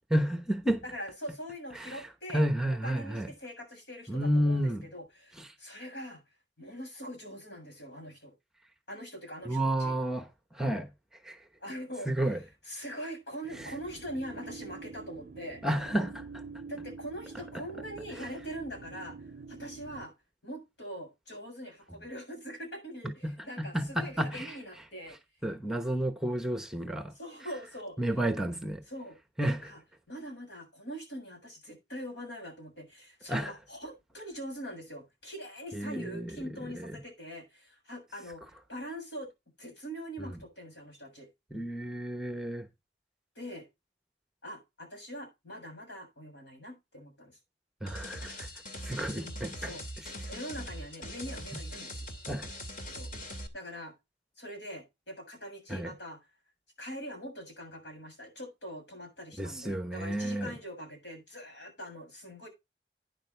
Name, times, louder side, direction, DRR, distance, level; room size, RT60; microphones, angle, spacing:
voice 1, 0.1-0.8 1.7-3.3 4.1-4.9 5.4-5.5 9.4-11.4 12.1-12.4 13.5-13.7 15.6-16.4 17.5-17.7 18.2-18.3 23.0-24.6 25.1-25.2 25.4-27.1 28.0-28.8 29.4-29.7 33.3-33.5 35.7-37.0 40.2-40.3 41.5-42.7 47.8-48.5 48.8-49.7 52.3-52.5 55.7-55.9 59.4-60.6, right 1 dB, 5° right, 1.0 m, -31 dB
voice 2, 0.9-2.4 2.7-6.2 6.6-8.3 8.9-10.0 11.6-12.1 12.7-15.6 16.7-19.2 19.5-20.1 20.4-25.2 27.2-28.0 28.9-29.2 29.4-29.8 30.1-38.4 38.7-39.3 39.6-41.3 43.4-43.7 44.4-47.4 49.1-49.3 49.6-49.8 50.2-52.0 52.9-53.1 53.5-53.9 54.4-56.2 56.8-62.5, equal, 75° left, 7.5 m, -43 dB
sound 1, 13.5-20.1, right 4 dB, 50° right, 0.5 m, -46 dB
sound 2, 47.9-53.5, equal, 50° left, 2.4 m, -41 dB
11.5 x 10.0 x 3.4 m
head